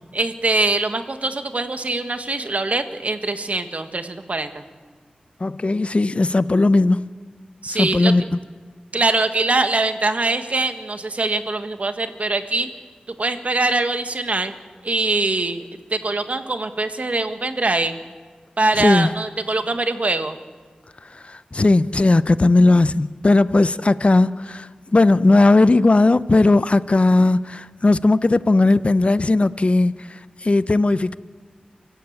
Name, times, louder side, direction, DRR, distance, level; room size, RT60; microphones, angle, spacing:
voice 1, 0.1-4.6 7.6-8.1 8.9-12.7 13.1-14.6 14.8-15.6 15.9-18.0 18.6-20.4, right 2 dB, 55° right, 1.6 m, -23 dB
voice 2, 5.4-7.1 7.7-8.2 18.8-19.1 21.2-31.2, left 2 dB, 45° left, 0.7 m, -17 dB
25.0 x 15.0 x 8.1 m
cardioid pair, 45°, 3 cm